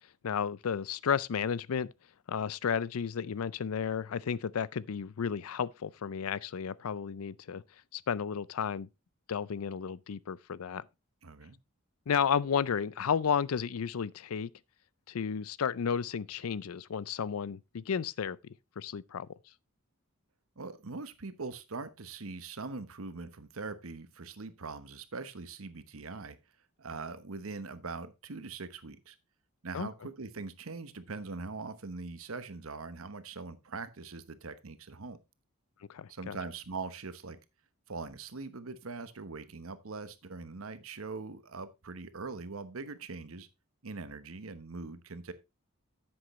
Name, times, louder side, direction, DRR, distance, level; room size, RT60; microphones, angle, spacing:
voice 1, 0.2-1.9 2.3-7.6 7.9-8.9 9.3-10.8 12.1-14.5 15.1-18.4 18.8-19.3 29.7-29.9 35.9-36.4, left 7 dB, 80° left, 0.5 m, -32 dB
voice 2, 11.2-11.6 20.6-26.4 26.8-29.2 29.6-35.2 36.1-37.4 37.9-43.5 43.8-45.3, right 4 dB, 75° right, 1.1 m, -42 dB
10.0 x 7.8 x 3.1 m
head